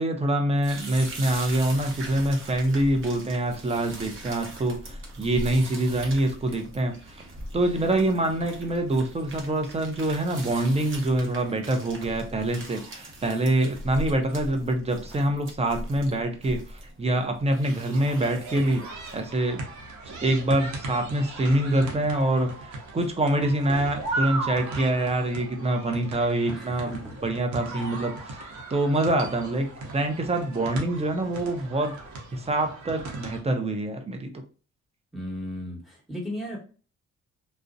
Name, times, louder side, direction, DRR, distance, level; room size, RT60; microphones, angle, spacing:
voice 1, 0.0-7.2 7.5-19.6 20.0-31.9 32.3-34.3, right 1 dB, 20° right, 4 dB, 0.5 m, -25 dB
sound 1, 0.6-19.3, right 1 dB, 40° right, 0.9 m, -41 dB
sound 2, 17.9-33.4, right 2 dB, 75° right, 0.8 m, -37 dB
voice 2, 26.5-27.2 35.1-36.6, left 1 dB, ahead, -4 dB, 1.2 m, -35 dB
2.5 x 2.1 x 2.5 m, 0.38 s
cardioid pair, 90°, 30 cm